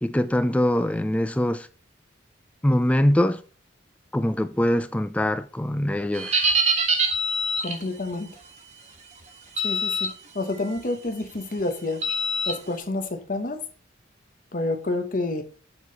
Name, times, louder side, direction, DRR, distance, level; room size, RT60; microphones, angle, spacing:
voice 1, 0.0-1.7 2.6-3.4 4.1-6.4, left 1 dB, 5° left, 0.3 m, -23 dB
sound 1, 6.1-7.8 9.6-10.1 10.5-10.8 12.0-12.5, right 1 dB, 35° right, 1.4 m, -24 dB
voice 2, 7.6-8.4 9.6-10.1 10.3-12.0 12.5-13.6 14.5-15.4, left 2 dB, 40° left, 0.9 m, -28 dB
7.0 x 4.2 x 4.0 m
head